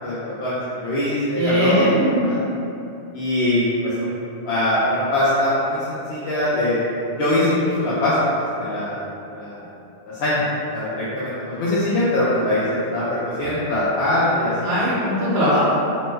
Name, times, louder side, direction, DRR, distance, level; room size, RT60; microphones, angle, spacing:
voice 1, 0.0-2.4 3.1-4.2 4.4-9.0 9.3-9.7 10.2-10.4 10.7-14.7, left 1 dB, 70° left, -10 dB, 0.8 m, -22 dB
voice 2, 1.4-2.2 14.6-15.6, equal, 80° right, -10 dB, 1.0 m, -20 dB
3.1 x 2.0 x 3.3 m, 2.8 s
omnidirectional pair, 1.2 m